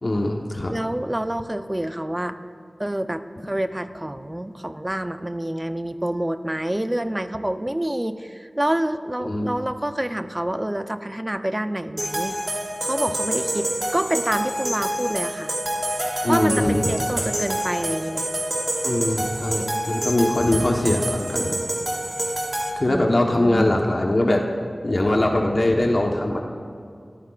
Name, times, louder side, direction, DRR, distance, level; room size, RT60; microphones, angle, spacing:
voice 1, 0.0-0.7 9.2-9.5 16.2-16.9 18.8-21.6 22.8-24.5 24.8-26.4, left 1 dB, 55° left, 1 dB, 1.1 m, -22 dB
voice 2, 0.7-2.4 2.8-12.4 12.8-15.6 16.3-18.3 22.9-23.7, right 1 dB, 20° right, 8 dB, 0.7 m, -27 dB
sound 1, 12.0-22.7, right 1 dB, 45° right, 3.0 m, -27 dB
29.5 x 13.5 x 2.5 m, 2.3 s
wide cardioid pair, 50°, 0 cm